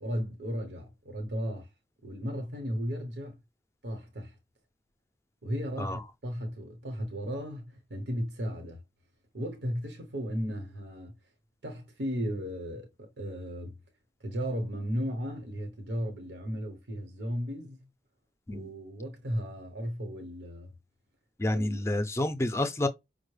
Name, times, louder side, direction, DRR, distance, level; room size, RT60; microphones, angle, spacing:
voice 1, 0.0-1.7 2.0-3.4 3.8-4.4 5.4-8.8 9.3-11.2 11.6-13.8 14.2-17.8 18.5-20.7 21.5-21.8, equal, 90° right, 1.0 m, -35 dB
voice 2, 21.4-22.9, left 1 dB, 15° left, 0.4 m, -29 dB
5.3 x 2.1 x 3.2 m
head